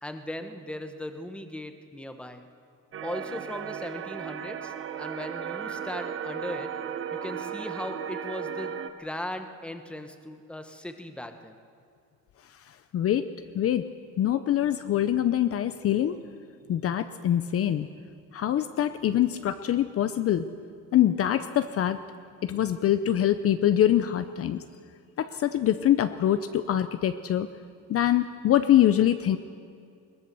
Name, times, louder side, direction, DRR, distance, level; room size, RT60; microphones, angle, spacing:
voice 1, 0.0-2.4 3.0-6.7 7.1-11.6, left 1 dB, 5° left, 7 dB, 1.2 m, -38 dB
sound 1, 2.9-8.9, right 8 dB, 40° right, 1.0 m, -35 dB
voice 2, 12.9-13.3 13.5-13.9 14.2-16.2 16.7-17.9 18.3-20.4 20.9-22.0 22.4-24.6 25.2-27.5 27.9-29.4, left 11 dB, 45° left, 11 dB, 0.7 m, -24 dB
21.5 x 19.5 x 6.9 m, 2.3 s
cardioid pair, 155°, 32 cm